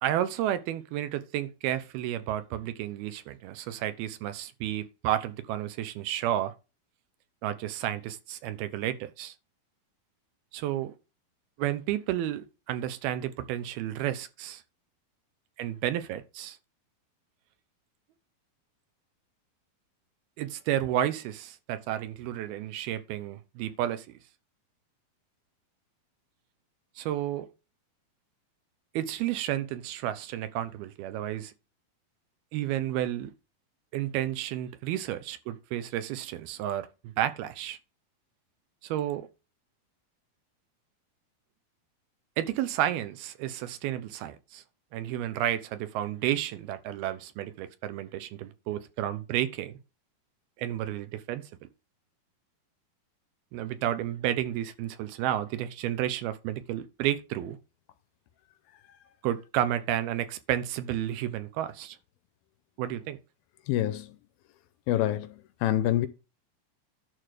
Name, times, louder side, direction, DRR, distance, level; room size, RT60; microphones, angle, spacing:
voice 1, 0.0-6.5 7.4-9.3 10.5-10.9 11.6-14.6 15.6-16.6 20.4-24.2 27.0-27.5 28.9-31.5 32.5-33.3 33.9-37.8 38.8-39.3 42.4-44.6 44.9-49.8 50.6-51.5 53.5-57.6 59.2-62.0 62.8-63.2, right 12 dB, 80° right, 2.8 m, -31 dB
voice 2, 63.7-64.2 64.9-66.1, left 13 dB, 80° left, 2.4 m, -27 dB
11.5 x 4.0 x 6.5 m
omnidirectional pair, 4.5 m